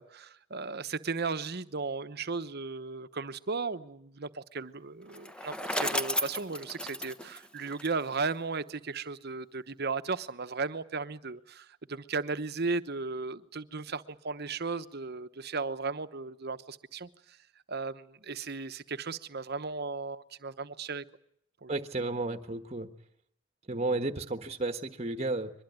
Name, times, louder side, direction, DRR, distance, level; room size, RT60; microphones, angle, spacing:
voice 1, 0.0-17.1 17.7-21.0 21.6-21.7, right 4 dB, 50° right, 1.0 m, -35 dB
Bicycle, 5.1-8.3, left 1 dB, 5° left, 1.0 m, -34 dB
voice 2, 21.7-22.9 23.7-25.5, right 2 dB, 30° right, 1.3 m, -32 dB
23.0 x 21.0 x 9.5 m
head